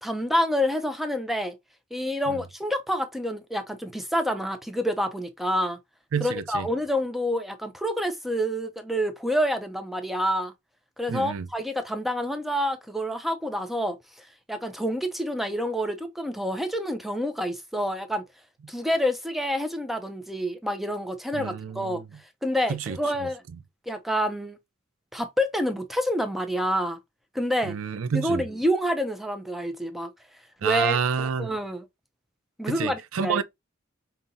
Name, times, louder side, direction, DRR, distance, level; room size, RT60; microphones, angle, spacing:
voice 1, 0.0-1.6 1.9-5.8 6.2-10.5 11.0-18.2 18.7-22.0 22.4-23.4 23.9-24.6 25.1-27.0 27.3-27.8 28.1-30.1 30.6-31.9 32.6-33.4, equal, ahead, 0.5 m, -28 dB
voice 2, 6.1-6.7 11.1-11.5 21.3-21.9 22.7-23.0 27.6-28.5 30.6-31.5 32.7-33.4, right 6 dB, 85° right, 0.4 m, -28 dB
5.4 x 2.8 x 2.6 m
head